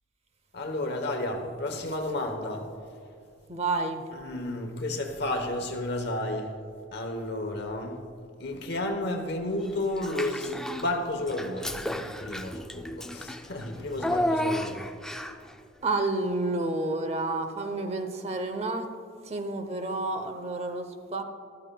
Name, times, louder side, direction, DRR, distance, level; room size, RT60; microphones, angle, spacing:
voice 1, 0.5-2.7 4.1-6.5 6.9-8.0 8.4-14.8, left 1 dB, 55° left, 3 dB, 1.0 m, -32 dB
voice 2, 3.5-4.0 15.8-18.9 19.2-21.2, right 2 dB, 30° right, 7 dB, 0.7 m, -30 dB
Child speech kid speaking / Bathtub (filling or washing), 10.0-10.9 11.3-15.5, left 1 dB, 5° left, 0.3 m, -32 dB
14.0 x 12.5 x 2.3 m, 2.4 s
head